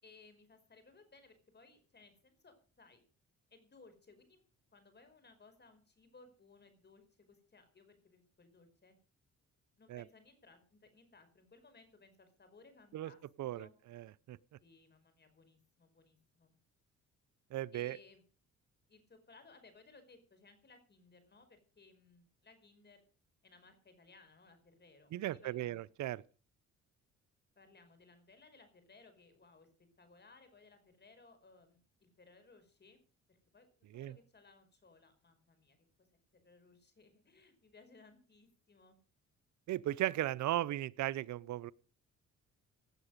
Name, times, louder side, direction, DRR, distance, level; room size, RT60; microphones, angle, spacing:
voice 1, 0.0-3.0 3.5-4.4 4.7-9.0 9.8-13.8 14.6-16.5 17.7-18.2 18.9-23.0 23.4-25.8 27.6-33.0 33.3-33.7 33.9-36.1 36.3-39.0, left 3 dB, 35° left, 5.2 m, -62 dB
voice 2, 13.9-14.4 17.5-18.0 25.1-26.2 33.9-34.1 39.7-41.7, right 14 dB, 70° right, 0.7 m, -36 dB
17.0 x 8.9 x 6.6 m
cardioid pair, 90°, 30 cm